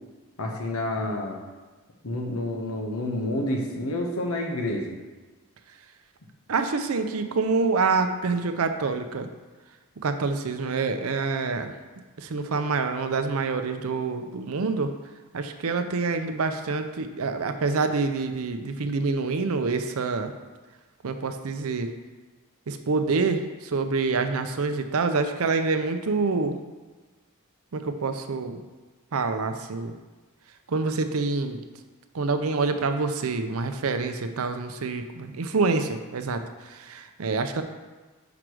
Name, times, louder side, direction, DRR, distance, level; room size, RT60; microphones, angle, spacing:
voice 1, 0.4-1.4 2.0-4.9, left 1 dB, 75° left, 1 dB, 1.1 m, -29 dB
voice 2, 6.5-9.3 10.0-11.7 12.2-14.9 15.3-20.3 21.0-21.9 22.7-26.6 27.7-28.6 29.1-29.9 30.7-31.6 32.1-37.6, right 4 dB, 75° right, 7 dB, 0.6 m, -26 dB
5.0 x 4.7 x 6.1 m, 1.3 s
head